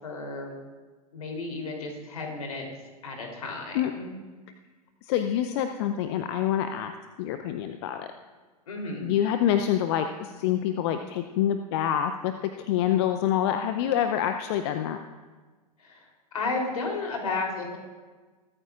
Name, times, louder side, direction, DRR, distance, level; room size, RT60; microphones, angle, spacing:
voice 1, 0.0-0.6 1.1-2.7 3.0-4.1 8.7-9.1 15.8-16.1 16.3-17.8, left 3 dB, 65° left, 1 dB, 3.6 m, -33 dB
voice 2, 5.0-8.1 9.0-15.0, left 10 dB, 45° left, 8 dB, 0.7 m, -26 dB
22.5 x 13.5 x 2.5 m, 1.4 s
figure-of-eight pair, 95°, 20 cm